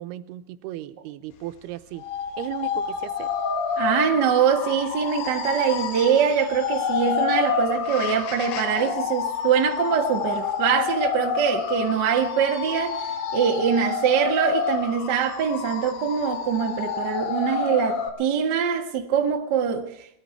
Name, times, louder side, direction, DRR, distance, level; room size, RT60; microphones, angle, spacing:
voice 1, 0.0-2.0 2.4-3.3, right 14 dB, 90° right, 2.8 m, -35 dB
sound 1, 2.0-18.1, left 6 dB, 70° left, 3.0 m, -28 dB
voice 2, 3.8-13.0 13.3-19.9, right 7 dB, 50° right, 1.3 m, -23 dB
20.5 x 13.5 x 4.5 m
omnidirectional pair, 4.5 m